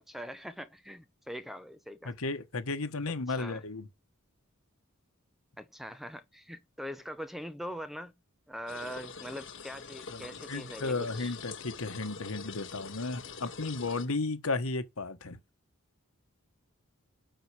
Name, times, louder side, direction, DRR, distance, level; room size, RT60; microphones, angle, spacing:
voice 1, 0.1-2.1 3.3-3.6 5.6-8.1 8.5-11.3, equal, ahead, 0.6 m, -42 dB
voice 2, 2.0-3.9 10.1-15.4, left 3 dB, 85° left, 1.3 m, -34 dB
sound 1, 8.7-14.1, left 5 dB, 60° left, 1.4 m, -45 dB
7.9 x 4.5 x 6.7 m
head